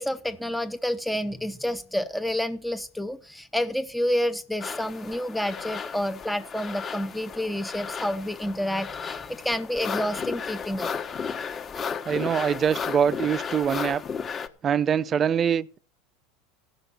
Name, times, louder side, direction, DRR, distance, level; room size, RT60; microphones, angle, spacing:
voice 1, 0.0-10.9, equal, 5° left, 0.7 m, -29 dB
sound 1, 4.6-14.5, left 6 dB, 30° left, 1.3 m, -34 dB
voice 2, 12.1-14.0 14.6-15.8, right 8 dB, 30° right, 0.6 m, -24 dB
15.0 x 6.0 x 6.8 m
supercardioid pair, 110°, 0 cm